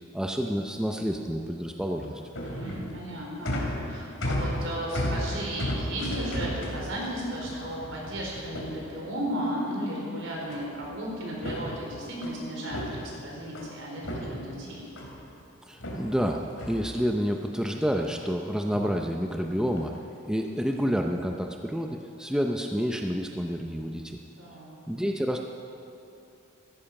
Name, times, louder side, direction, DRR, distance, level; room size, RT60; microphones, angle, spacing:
voice 1, 0.1-2.2 15.7-19.9 20.3-24.2 24.9-25.4, equal, 5° right, 2 dB, 0.6 m, -29 dB
sound 1, 1.8-9.4 10.5-11.0 11.3-13.7 14.0-15.3 15.8-17.5 17.9-18.4 18.6-19.0 19.7-20.1 20.6-20.9, left 1 dB, 70° left, 2.8 m, -35 dB
voice 2, 2.4-3.6 3.9-14.9 24.4-24.8, right 1 dB, 70° right, -3 dB, 4.5 m, -34 dB
15.5 x 14.0 x 6.0 m, 2.6 s
head